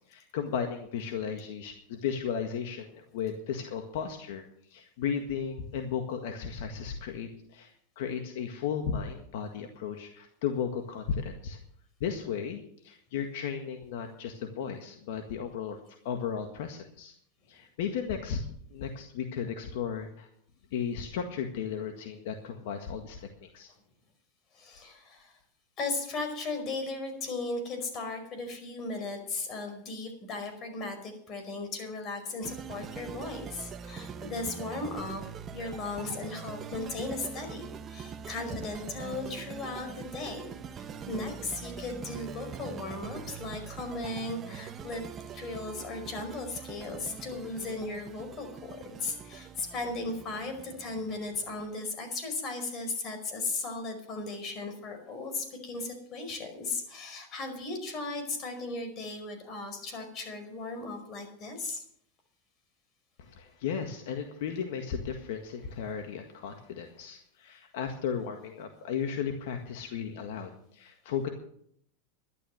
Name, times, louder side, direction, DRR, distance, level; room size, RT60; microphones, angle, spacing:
voice 1, 0.1-11.6 12.0-17.1 17.5-20.3 20.7-23.7 63.2-71.3, left 7 dB, 70° left, 5 dB, 1.7 m, -35 dB
voice 2, 24.5-25.4 25.8-35.2 35.5-45.0 45.3-61.8, left 3 dB, 40° left, 6 dB, 5.0 m, -36 dB
sound 1, 32.4-51.7, right 7 dB, 30° right, 1.0 m, -43 dB
12.0 x 11.5 x 6.5 m, 0.66 s
supercardioid pair, 120°, 0 cm